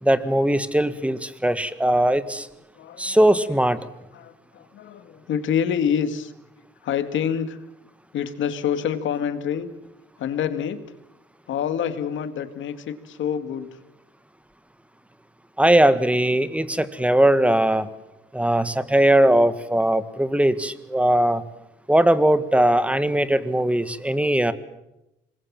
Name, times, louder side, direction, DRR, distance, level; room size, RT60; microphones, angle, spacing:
voice 1, 0.0-2.5 3.0-3.8 15.6-17.9 18.3-21.4 21.9-24.5, right 1 dB, 5° right, 13 dB, 1.7 m, -19 dB
voice 2, 2.8-3.5 4.1-6.3 6.8-7.6 8.1-9.7 10.2-10.8 11.5-13.7, left 8 dB, 75° left, 10 dB, 2.3 m, -27 dB
27.0 x 21.0 x 7.7 m, 0.89 s
cardioid pair, 90°, 20 cm